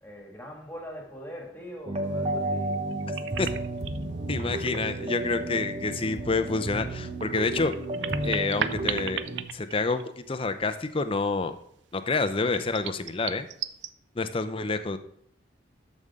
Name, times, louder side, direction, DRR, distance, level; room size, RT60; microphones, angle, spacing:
voice 1, 0.0-3.3, equal, 10° left, 0 dB, 2.1 m, -42 dB
sound 1, 1.9-9.4, right 1 dB, 35° right, 1.0 m, -32 dB
sound 2, 2.7-4.0 4.5-5.6 5.9-6.0 7.4-10.4 10.7-10.8 12.5-13.9, right 9 dB, 65° right, 0.4 m, -35 dB
voice 2, 4.3-7.7 8.2-9.2 9.5-11.5 11.9-13.5 14.2-15.0, left 3 dB, 30° left, 10 dB, 0.6 m, -28 dB
13.0 x 5.4 x 3.6 m, 0.70 s
head